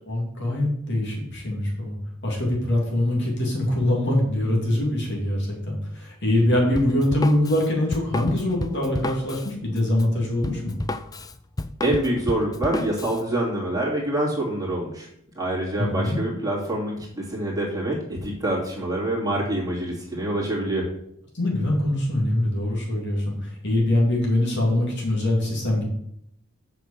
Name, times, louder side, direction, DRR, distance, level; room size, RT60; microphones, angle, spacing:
voice 1, 0.1-1.9 2.2-10.7 15.8-16.2 21.3-25.8, left 1 dB, 55° left, -2 dB, 2.9 m, -23 dB
Drum kit, 6.8-13.2, left 2 dB, 15° left, 0.4 m, -32 dB
voice 2, 11.8-15.1 15.3-20.9, right 1 dB, 15° right, -4 dB, 2.7 m, -26 dB
8.2 x 6.0 x 6.7 m, 0.75 s
head